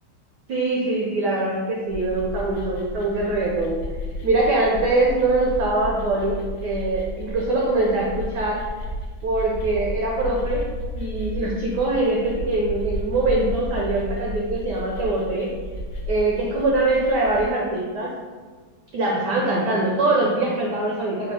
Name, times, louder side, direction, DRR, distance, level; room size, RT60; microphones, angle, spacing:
voice 1, 0.5-3.8 4.2-8.6 9.2-10.7 10.9-15.5 16.1-18.1 18.9-21.3, right 2 dB, 80° right, -2 dB, 0.9 m, -23 dB
sound 1, 1.9-17.5, left 1 dB, 70° left, 1.0 m, -33 dB
4.5 x 2.2 x 3.2 m, 1.5 s
omnidirectional pair, 2.3 m